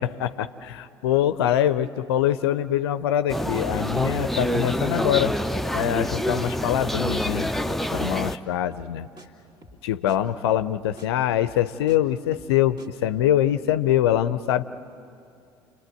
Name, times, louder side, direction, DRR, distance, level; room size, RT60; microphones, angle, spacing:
voice 1, 0.0-5.3 5.7-9.1 9.8-14.6, left 11 dB, 65° left, 13 dB, 0.6 m, -24 dB
sound 1, 3.3-8.4, equal, ahead, 0.6 m, -26 dB
sound 2, 6.5-6.6 6.9-7.1 7.4-7.5 7.8-8.0 8.3-8.4 8.7-8.9 9.2-9.3 9.6-9.8 10.1-10.2 10.5-10.7 11.0-11.1 11.4-12.0 12.3-12.5 12.8-12.9, equal, 35° right, 2.7 m, -48 dB
29.5 x 21.5 x 7.8 m, 2.5 s
figure-of-eight pair, 60°, 14 cm